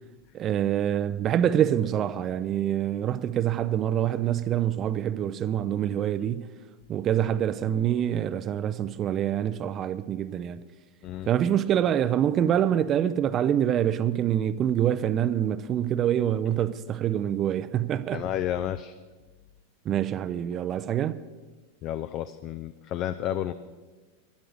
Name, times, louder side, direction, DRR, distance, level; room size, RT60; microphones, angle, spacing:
voice 1, 0.3-6.5 6.9-10.6 11.3-18.2 19.8-21.2, right 10 dB, 30° right, 0.5 m, -26 dB
voice 2, 18.1-19.0 21.8-23.5, left 11 dB, 35° left, 0.5 m, -31 dB
12.5 x 11.5 x 6.5 m
figure-of-eight pair, 90°, 0 cm